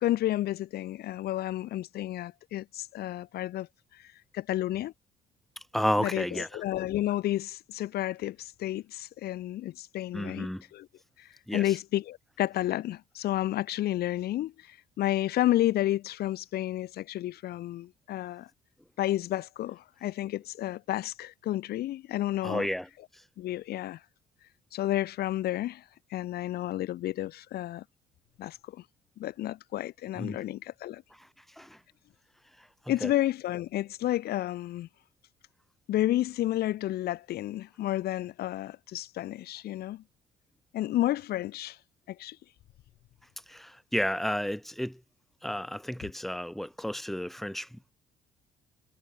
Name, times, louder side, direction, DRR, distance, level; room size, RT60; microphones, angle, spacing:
voice 1, 0.0-3.7 3.9-4.9 6.0-10.9 11.2-18.5 19.0-22.7 23.0-23.1 23.4-24.0 24.7-25.8 26.1-27.8 28.4-28.8 29.2-31.0 32.9-34.9 35.9-40.0 40.7-41.8 42.1-42.4 46.0-46.1, left 14 dB, 70° left, 1.7 m, -31 dB
voice 2, 5.7-6.5 10.1-10.6 11.5-11.6 22.4-22.8 30.2-30.4 31.6-31.7 33.0-33.1 43.5-44.9 45.4-47.7, equal, ahead, 2.2 m, -31 dB
cardioid pair, 110°, 17 cm